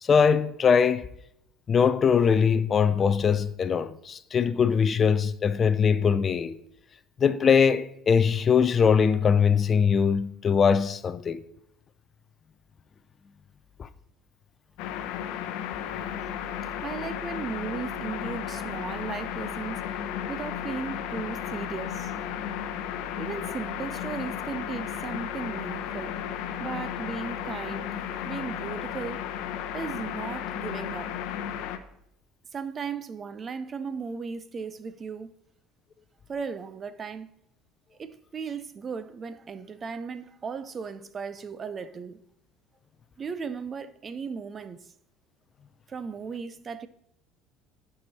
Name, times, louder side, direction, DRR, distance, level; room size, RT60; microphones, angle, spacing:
voice 1, 0.0-1.0 1.7-6.6 7.2-11.4 13.8-13.9, left 6 dB, 35° left, 0.4 m, -22 dB
sound 1, 14.8-31.8, left 9 dB, 75° left, 0.7 m, -34 dB
voice 2, 16.8-19.9 20.3-22.1 23.2-26.2 26.6-28.0 28.2-29.3 29.7-31.1 32.5-35.3 36.3-37.3 38.0-42.2 43.2-44.9 45.9-46.9, right 5 dB, 30° right, 0.5 m, -36 dB
10.5 x 4.9 x 4.1 m
supercardioid pair, 105°, 0 cm